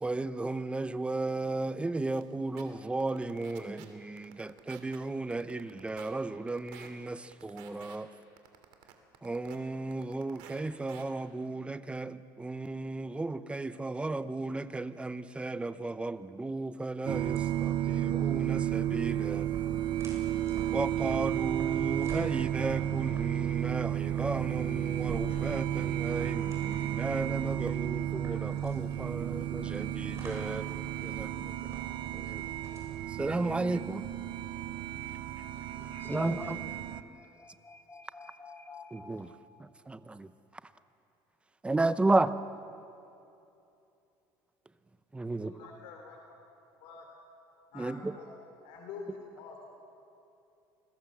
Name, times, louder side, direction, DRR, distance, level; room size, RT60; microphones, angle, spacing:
voice 1, 0.0-8.1 9.2-19.5 20.7-30.7 31.0-31.7 32.1-32.4 33.1-34.1 36.1-36.6 38.9-39.3 39.6-40.3 41.6-42.3 45.1-45.5 47.7-48.2, right 2 dB, 10° right, 0.8 m, -34 dB
sound 1, 2.1-2.2 2.6-2.7 3.0-3.8 4.2-5.0 5.3-6.1 6.5-6.9 7.3-8.0 8.4-9.6 9.9-10.6 10.9-11.0, right 12 dB, 85° right, 2.8 m, -51 dB
sound 2, 17.1-37.0, right 11 dB, 55° right, 0.9 m, -32 dB
sound 3, 17.3-34.6, right 3 dB, 30° right, 7.3 m, -49 dB
voice 2, 35.4-39.4, left 3 dB, 25° left, 2.3 m, -47 dB
voice 3, 45.3-46.4 46.8-47.1 47.7-48.3 48.6-49.8, left 5 dB, 80° left, 3.2 m, -47 dB
29.0 x 21.0 x 7.4 m
cardioid pair, 120°, 9 cm